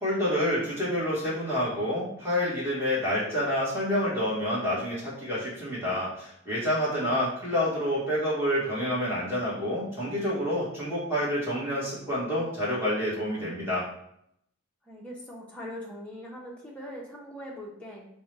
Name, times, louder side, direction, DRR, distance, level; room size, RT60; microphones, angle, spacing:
voice 1, 0.0-13.8, left 1 dB, 10° right, -8 dB, 1.2 m, -28 dB
voice 2, 14.8-18.1, equal, 5° left, -4 dB, 0.6 m, -41 dB
4.4 x 2.1 x 3.2 m, 0.73 s
head